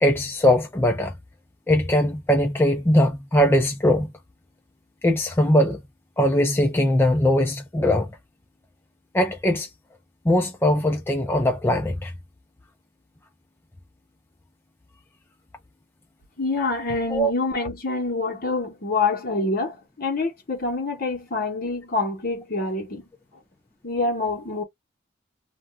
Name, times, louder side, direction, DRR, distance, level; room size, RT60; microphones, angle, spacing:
voice 1, 0.0-1.2 1.7-4.1 5.0-5.8 6.2-8.1 9.1-9.7 10.2-12.1 17.1-17.3, left 1 dB, 10° left, 0.3 m, -20 dB
voice 2, 16.4-23.1 23.8-24.6, left 3 dB, 45° left, 1.0 m, -26 dB
2.5 x 2.3 x 3.2 m
head